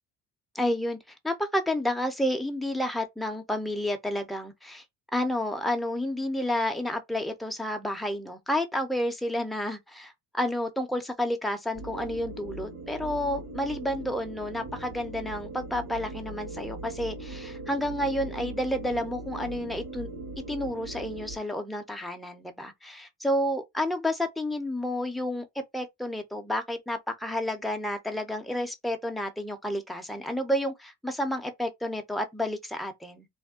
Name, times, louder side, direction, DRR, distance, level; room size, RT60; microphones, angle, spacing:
voice 1, 0.5-1.0 1.2-4.8 5.1-20.1 20.5-25.4 25.7-33.3, left 1 dB, ahead, 0.6 m, -30 dB
sound 1, 11.7-21.4, right 2 dB, 55° right, 1.3 m, -40 dB
2.5 x 2.2 x 3.5 m
cardioid pair, 115°, 33 cm